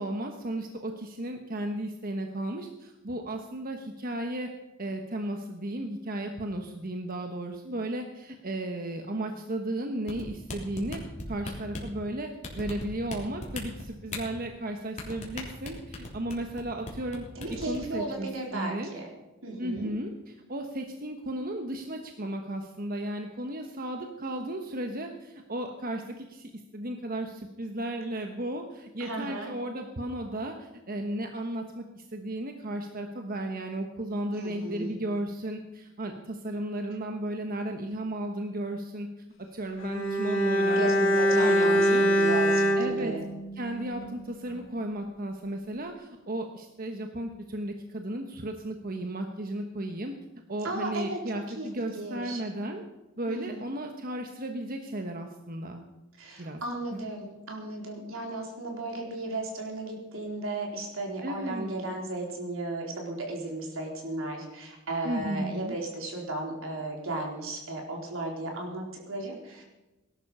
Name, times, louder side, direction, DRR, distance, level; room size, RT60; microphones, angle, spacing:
voice 1, 0.0-4.5 4.8-11.0 11.3-12.3 12.5-17.2 17.7-18.9 19.6-39.1 39.5-42.1 42.8-43.1 43.5-50.1 50.5-52.8 53.2-55.9 56.4-56.6 56.9-57.0 61.2-61.7 65.0-65.8, right 1 dB, 45° right, 4 dB, 1.2 m, -34 dB
sound 1, 10.1-11.9 12.4-13.2 13.4-14.2 15.0-16.6 16.9-17.2 17.4-17.8, left 2 dB, 35° left, 3.4 m, -36 dB
voice 2, 17.4-19.1 19.4-19.9 29.0-29.5 34.3-35.0 40.8-43.2 50.6-51.2 51.6-51.7 51.9-52.4 53.3-53.6 56.2-69.6, right 2 dB, 75° right, 0 dB, 4.1 m, -35 dB
Bowed string instrument, 39.8-44.2 44.5-44.6, equal, 75° left, 4.6 m, -24 dB
18.5 x 11.5 x 5.6 m, 1.1 s
head